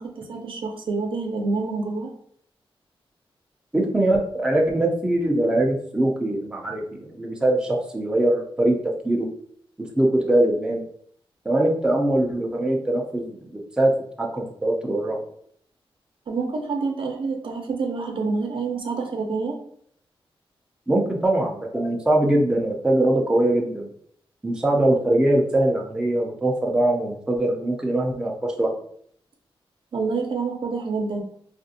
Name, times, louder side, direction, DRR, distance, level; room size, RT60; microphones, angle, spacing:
voice 1, 0.0-2.1 16.3-19.6 29.9-31.2, right 4 dB, 65° right, 3 dB, 0.6 m, -27 dB
voice 2, 3.7-9.3 9.8-10.9 11.4-13.9 14.2-15.2 20.9-23.9 24.4-28.7, right 1 dB, 10° right, -1 dB, 0.5 m, -22 dB
3.4 x 2.5 x 2.6 m, 0.64 s
wide cardioid pair, 135°, 10 cm